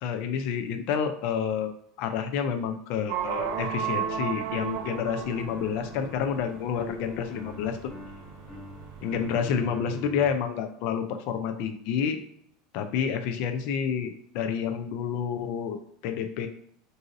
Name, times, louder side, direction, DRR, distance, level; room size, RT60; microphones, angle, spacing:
voice 1, 0.0-7.8 9.0-12.2 12.7-16.5, left 7 dB, 60° left, 7 dB, 0.4 m, -29 dB
sound 1, 3.1-9.6, right 9 dB, 60° right, 0.4 m, -35 dB
sound 2, 3.3-10.3, equal, 10° left, 0.9 m, -42 dB
2.7 x 2.5 x 3.9 m, 0.67 s
supercardioid pair, 120°, 2 cm